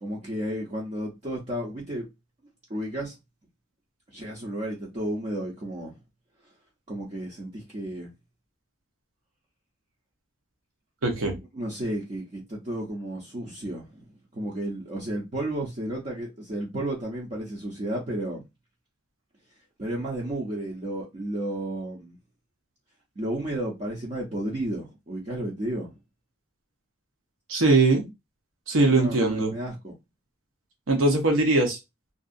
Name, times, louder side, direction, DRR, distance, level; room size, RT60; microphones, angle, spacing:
voice 1, 0.0-2.1 2.7-3.2 4.1-5.9 6.9-8.1 11.5-14.1 14.3-18.4 19.8-22.2 23.2-26.0 28.7-29.9, right 1 dB, 35° right, 0.6 m, -32 dB
voice 2, 11.0-11.4 27.5-28.1 28.7-29.5 30.9-31.8, right 2 dB, 75° right, 0.8 m, -21 dB
2.6 x 2.3 x 2.5 m
head